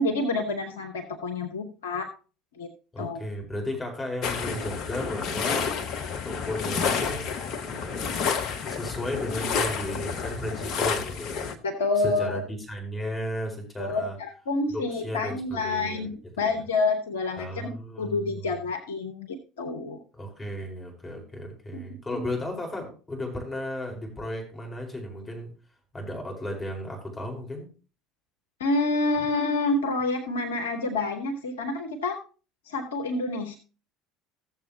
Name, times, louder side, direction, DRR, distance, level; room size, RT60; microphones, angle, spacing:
voice 1, 0.0-2.1 2.6-2.7 3.0-3.2 11.6-12.4 13.8-17.5 18.0-20.0 21.7-21.8 22.1-22.2 28.6-32.2 32.7-33.6, left 3 dB, 70° left, 4 dB, 1.1 m, -28 dB
voice 2, 2.9-5.7 6.2-7.3 7.7-8.2 8.7-11.5 12.0-14.2 14.7-16.1 16.4-16.5 17.4-18.4 20.1-25.5 25.9-27.7 29.2-29.3, left 1 dB, 20° left, 1 dB, 4.8 m, -34 dB
sound 1, 4.2-11.6, left 6 dB, 45° left, 1.1 m, -30 dB
15.0 x 7.4 x 2.9 m, 0.36 s
figure-of-eight pair, 65°, 0 cm